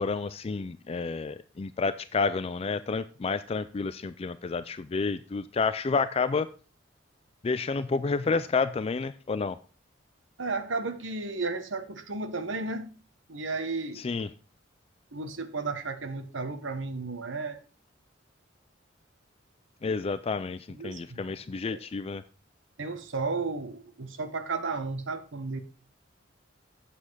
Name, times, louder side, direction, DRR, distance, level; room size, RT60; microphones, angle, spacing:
voice 1, 0.0-6.5 7.4-9.6 14.0-14.3 19.8-22.2, left 4 dB, 30° left, 13 dB, 0.4 m, -30 dB
voice 2, 10.4-12.9 13.3-14.1 15.1-17.6 20.7-21.2 21.7-21.8 22.8-25.6, right 3 dB, 85° right, 8 dB, 1.2 m, -33 dB
8.4 x 7.7 x 4.7 m, 0.36 s
head